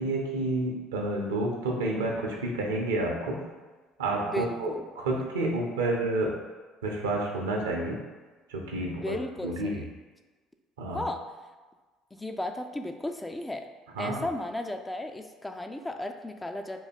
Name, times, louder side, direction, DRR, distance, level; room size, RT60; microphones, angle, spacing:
voice 1, 0.0-3.4 4.0-6.3 6.8-8.0 8.5-9.2 9.4-9.8 10.8-11.0 14.0-14.3, right 2 dB, 70° right, 0 dB, 0.7 m, -29 dB
voice 2, 4.2-4.8 5.8-6.0 8.9-9.9 10.9-11.2 12.1-13.6 14.0-16.8, left 1 dB, 10° left, 5 dB, 0.3 m, -35 dB
3.7 x 2.7 x 4.3 m, 1.3 s
figure-of-eight pair, 55°, 0 cm